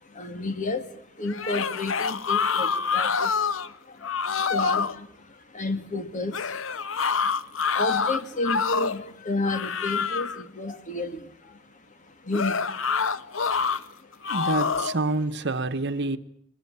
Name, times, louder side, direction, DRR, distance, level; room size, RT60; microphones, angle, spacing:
voice 1, 0.2-0.8 1.2-3.3 4.5-4.9 5.5-6.3 7.7-11.2 12.3-12.5, left 2 dB, 40° left, 2.3 m, -30 dB
sound 1, 1.3-3.7 4.0-4.9 6.3-9.0 9.5-10.4 12.3-13.8 14.2-15.0, left 5 dB, 65° left, 1.0 m, -26 dB
voice 2, 14.3-16.2, right 2 dB, 60° right, 1.3 m, -27 dB
22.0 x 21.5 x 9.9 m
head